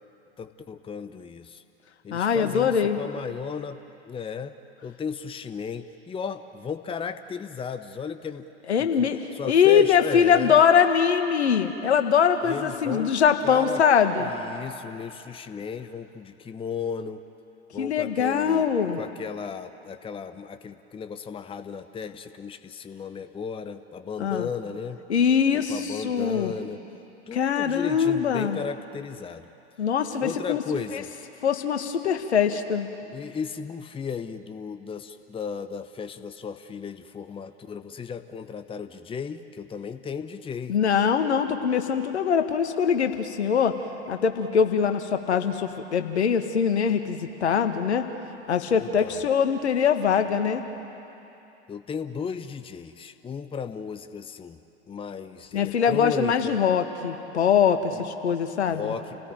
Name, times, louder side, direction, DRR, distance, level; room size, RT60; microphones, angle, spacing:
voice 1, 0.4-1.6 2.0-3.8 4.0-4.6 4.8-8.5 9.0-10.6 12.4-13.1 13.4-13.8 14.2-17.2 17.7-18.7 19.0-25.0 25.5-26.8 27.3-29.5 30.2-31.1 33.1-40.8 48.7-49.2 51.7-54.6 54.9-56.6 57.9-58.1 58.6-59.3, left 6 dB, 15° left, 11 dB, 0.9 m, -35 dB
voice 2, 2.1-3.0 8.7-9.2 9.5-14.3 17.8-19.0 24.2-24.5 25.1-26.5 27.3-28.6 29.8-30.6 30.9-31.0 31.4-32.9 40.7-43.8 44.1-48.1 48.5-50.6 55.5-58.9, left 7 dB, 75° left, 7 dB, 1.8 m, -22 dB
30.0 x 18.5 x 9.1 m, 2.9 s
figure-of-eight pair, 85°, 33 cm